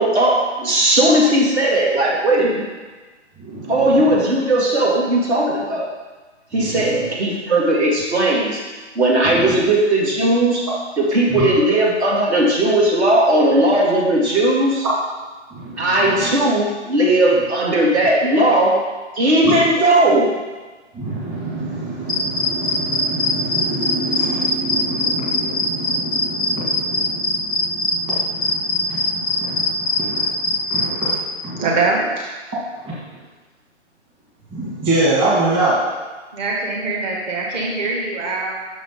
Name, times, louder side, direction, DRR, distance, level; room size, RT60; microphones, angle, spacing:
voice 1, 0.0-2.7 3.7-5.9 6.5-8.6 9.0-10.6 11.0-14.9 15.8-18.8 19.2-20.3, right 1 dB, 65° right, -3 dB, 2.1 m, -17 dB
voice 2, 3.4-4.2 6.5-7.1 9.2-9.5 11.3-11.6 15.5-16.3 19.4-19.6 20.9-31.7 32.8-33.0 34.5-35.8, right 2 dB, 15° right, -8 dB, 1.7 m, -26 dB
sound 1, 22.1-31.2, left 3 dB, 15° left, 0.4 m, -20 dB
voice 3, 31.6-32.1 36.3-38.5, right 3 dB, 35° right, -3 dB, 1.9 m, -22 dB
6.4 x 5.9 x 4.3 m, 1.3 s
figure-of-eight pair, 140°, 36 cm